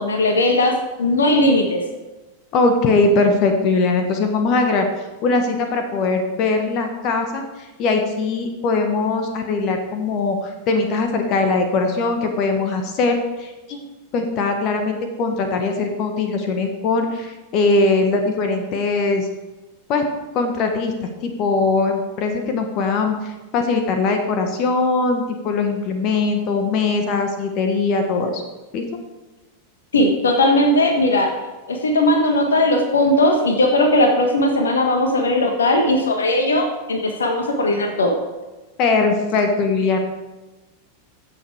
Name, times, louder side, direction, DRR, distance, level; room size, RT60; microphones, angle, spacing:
voice 1, 0.0-1.8 29.9-31.3 31.7-38.2, left 1 dB, 70° left, 4 dB, 1.4 m, -18 dB
voice 2, 2.5-4.9 5.2-13.8 14.1-19.3 19.9-20.0 20.3-20.9 21.2-28.4 28.7-28.8 38.8-40.0, left 3 dB, 40° left, 5 dB, 1.5 m, -21 dB
15.5 x 6.9 x 4.8 m, 1.1 s
figure-of-eight pair, 90°, 0 cm